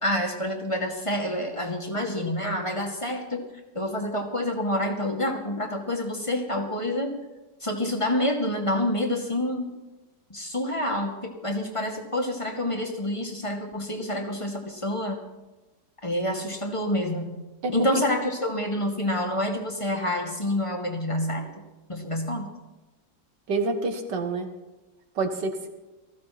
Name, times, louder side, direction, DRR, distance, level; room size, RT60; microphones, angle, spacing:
voice 1, 0.0-3.4 3.7-7.1 7.6-9.7 10.3-15.2 16.0-17.3 17.7-21.5 21.9-22.5, left 1 dB, 15° left, 2 dB, 2.0 m, -28 dB
voice 2, 23.5-24.5 25.2-25.7, right 3 dB, 80° right, 6 dB, 2.2 m, -27 dB
19.5 x 15.0 x 4.3 m, 1.1 s
omnidirectional pair, 1.9 m